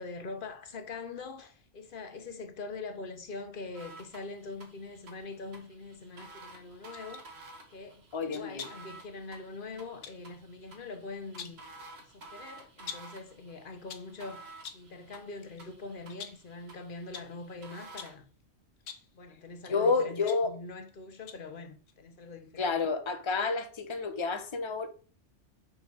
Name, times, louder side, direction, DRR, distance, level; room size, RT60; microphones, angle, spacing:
voice 1, 0.0-7.2 7.7-11.7 12.1-18.3 19.1-22.8, left 3 dB, 50° left, 1.1 m, -43 dB
sound 1, 3.7-18.1, right 2 dB, 60° right, 1.6 m, -52 dB
sound 2, 6.9-7.3 8.3-8.9 10.0-10.2 11.1-11.7 12.9-13.2 13.7-14.2 14.6-14.9 15.4-15.6 16.1-16.5 17.1-17.4 18.0-18.3 18.8-19.1 19.9-20.9 21.3-21.5 21.9-22.0, left 7 dB, 85° left, 1.2 m, -46 dB
voice 2, 8.1-8.7 19.6-20.5 22.6-24.9, left 4 dB, 30° left, 0.8 m, -29 dB
5.9 x 5.3 x 4.6 m
omnidirectional pair, 1.2 m